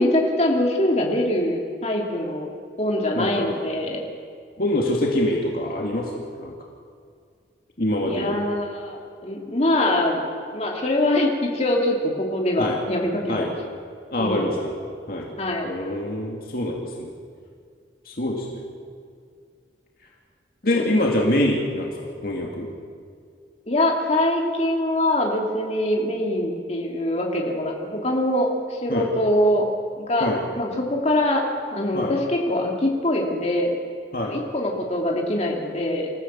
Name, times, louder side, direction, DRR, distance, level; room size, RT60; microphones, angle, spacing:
voice 1, 0.0-2.5 2.8-4.0 8.0-10.3 10.5-13.5 14.2-14.6 15.4-15.7 20.7-20.8 23.7-29.7 30.0-33.8 34.2-36.1, left 1 dB, 35° left, 0 dB, 2.9 m, -23 dB
voice 2, 3.1-3.5 4.6-6.5 7.8-8.4 12.6-12.8 13.3-13.5 14.1-14.7 15.1-15.3 15.6-17.1 18.1-18.6 20.6-22.7 28.9-29.1 30.2-30.4 31.9-32.1 34.1-34.4, left 1 dB, 50° left, -1 dB, 2.4 m, -25 dB
27.0 x 15.0 x 7.5 m, 2.2 s
head